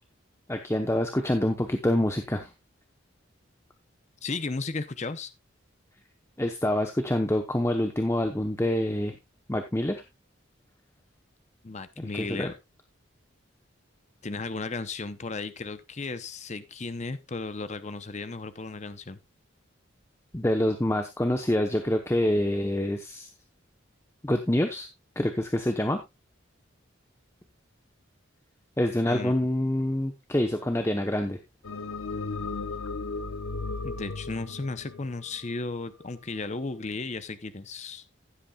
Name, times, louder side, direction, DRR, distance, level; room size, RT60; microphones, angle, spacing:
voice 1, 0.5-2.5 6.4-9.1 9.5-10.0 12.0-12.5 20.3-23.3 24.2-24.9 25.2-26.0 28.8-31.4, left 1 dB, 15° left, 6 dB, 0.9 m, -26 dB
voice 2, 4.2-5.3 11.6-12.5 14.2-19.2 29.1-29.3 33.8-38.0, left 3 dB, 35° left, 12 dB, 0.7 m, -35 dB
sound 1, 31.6-36.0, left 3 dB, 90° left, 1.0 m, -35 dB
16.0 x 8.4 x 2.3 m, 0.22 s
head